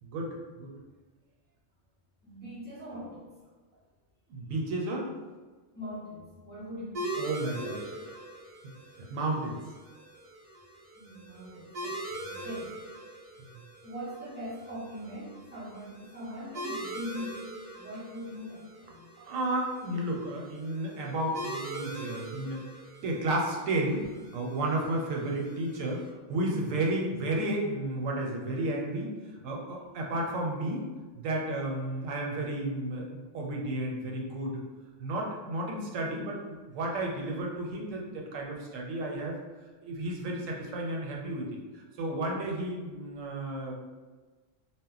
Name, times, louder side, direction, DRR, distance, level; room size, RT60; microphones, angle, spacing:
voice 1, 0.0-0.7 4.3-5.1 7.1-7.9 9.1-9.6 19.2-22.6 23.0-24.1 24.3-29.1 29.4-30.9 31.1-34.6 35.0-39.4 39.8-41.5 42.0-43.8, right 1 dB, 85° right, 0 dB, 1.0 m, -32 dB
voice 2, 2.2-3.3 5.7-7.2 10.9-12.8 13.8-19.1, equal, 10° right, -11 dB, 1.0 m, -41 dB
sound 1, 6.9-26.1, right 1 dB, 65° right, 0.3 m, -42 dB
2.2 x 2.0 x 3.8 m, 1.3 s
omnidirectional pair, 1.3 m